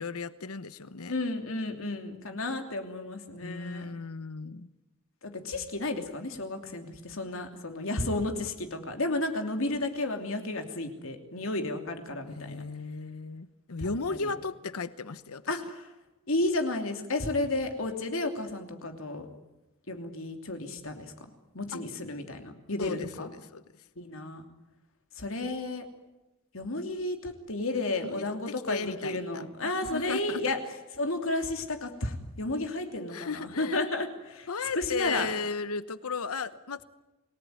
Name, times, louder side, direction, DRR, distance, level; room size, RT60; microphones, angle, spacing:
voice 1, 0.0-1.1 3.4-4.7 12.3-15.4 21.7-21.8 22.8-23.6 28.0-28.2 28.7-30.4 33.1-33.8 34.5-36.8, left 4 dB, 85° left, 15 dB, 1.0 m, -35 dB
voice 2, 1.1-3.8 5.2-12.6 13.8-14.3 15.5-15.9 16.3-19.3 19.9-21.1 21.5-23.3 24.0-24.4 25.2-25.8 26.5-30.6 31.0-35.3, left 2 dB, 65° left, 5 dB, 2.9 m, -32 dB
28.0 x 19.0 x 9.5 m, 1.0 s
head